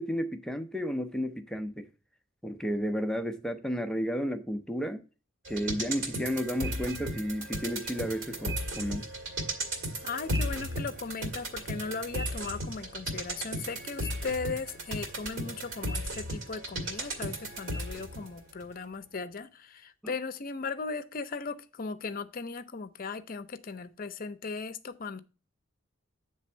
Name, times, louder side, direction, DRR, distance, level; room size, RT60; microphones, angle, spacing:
voice 1, 0.0-1.9 2.4-5.0 5.5-9.1 20.0-20.1, equal, 5° left, 0.6 m, -32 dB
sound 1, 5.4-18.3 18.6-18.7, right 1 dB, 70° right, 2.2 m, -35 dB
voice 2, 10.0-25.2, left 4 dB, 45° left, 0.6 m, -37 dB
8.7 x 3.4 x 5.5 m
head